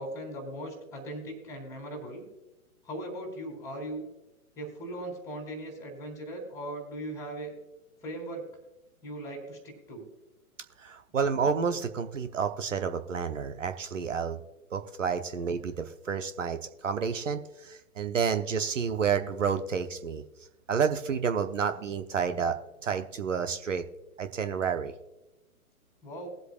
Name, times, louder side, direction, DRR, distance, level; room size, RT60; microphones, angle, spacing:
voice 1, 0.0-2.2 2.8-4.0 4.6-7.5 8.0-8.4 9.0-10.1 26.0-26.3, right 1 dB, 5° left, 1 dB, 3.0 m, -39 dB
voice 2, 10.8-14.4 14.7-20.2 20.7-22.6 22.8-23.8 24.2-24.9, right 6 dB, 55° right, 8 dB, 1.0 m, -30 dB
21.5 x 8.0 x 2.4 m, 1.0 s
figure-of-eight pair, 120°, 44 cm